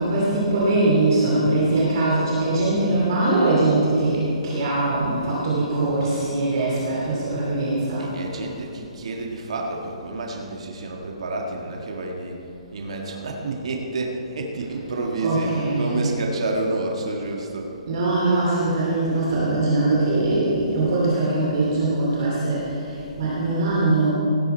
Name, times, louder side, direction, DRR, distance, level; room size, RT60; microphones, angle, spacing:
voice 1, 0.0-8.1 15.2-16.1 17.9-24.1, right 2 dB, 35° right, -6 dB, 2.7 m, -22 dB
voice 2, 8.0-12.4 12.7-17.7, right 2 dB, 55° right, 0 dB, 1.6 m, -29 dB
17.0 x 9.5 x 4.4 m, 2.8 s
hypercardioid pair, 175°, 4 cm